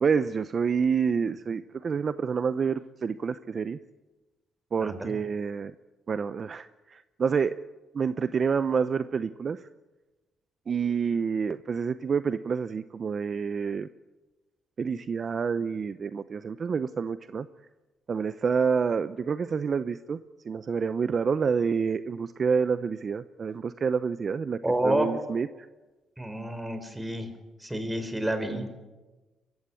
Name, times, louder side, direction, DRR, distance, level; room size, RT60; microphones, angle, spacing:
voice 1, 0.0-3.8 4.7-5.7 6.1-7.5 7.9-9.7 10.7-13.9 14.8-17.5 18.1-20.2 20.4-24.6 24.8-25.7, right 6 dB, 45° right, 13 dB, 0.7 m, -28 dB
voice 2, 4.8-5.1 24.6-25.1 26.2-27.3 27.6-28.7, right 1 dB, 10° right, 8 dB, 4.4 m, -29 dB
23.0 x 15.5 x 9.9 m, 1.2 s
cardioid pair, 90°, 0 cm